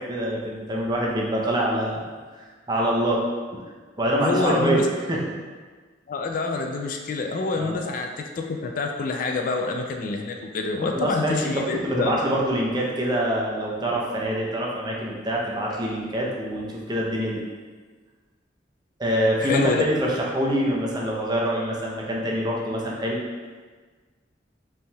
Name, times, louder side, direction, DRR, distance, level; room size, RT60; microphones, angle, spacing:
voice 1, 0.0-2.0 2.7-3.2 3.5-3.6 4.0-4.8 5.1-5.2 7.6-7.8 10.8-17.4 19.0-23.2, equal, 25° right, -3 dB, 0.6 m, -25 dB
voice 2, 4.2-4.9 6.1-12.2 19.4-19.8, left 3 dB, 45° left, 3 dB, 0.3 m, -27 dB
5.1 x 3.4 x 2.3 m, 1.4 s
head